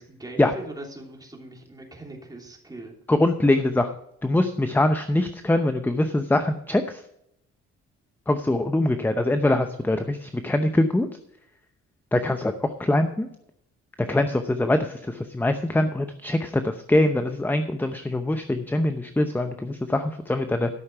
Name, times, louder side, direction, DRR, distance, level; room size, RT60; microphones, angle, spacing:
voice 1, 0.0-2.9 14.1-14.4, right 2 dB, 15° right, 0 dB, 3.3 m, -41 dB
voice 2, 3.1-3.9 4.2-7.0 8.3-11.1 12.1-12.5 12.8-13.3 14.0-20.7, left 1 dB, 5° left, 8 dB, 0.7 m, -23 dB
12.5 x 6.5 x 5.7 m, 0.74 s
cardioid pair, 90°, 30 cm